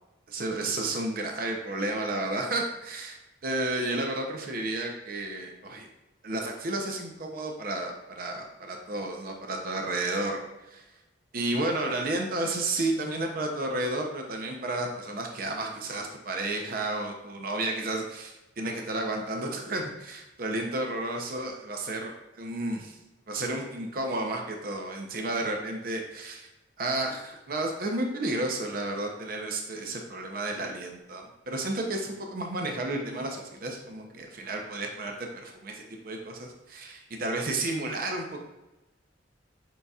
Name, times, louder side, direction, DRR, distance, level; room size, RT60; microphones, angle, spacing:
voice 1, 0.3-3.2 3.4-5.9 6.2-10.8 11.3-23.0 23.3-26.5 26.8-38.5, right 2 dB, 50° right, 2 dB, 0.6 m, -32 dB
5.4 x 3.8 x 2.3 m, 1.0 s
head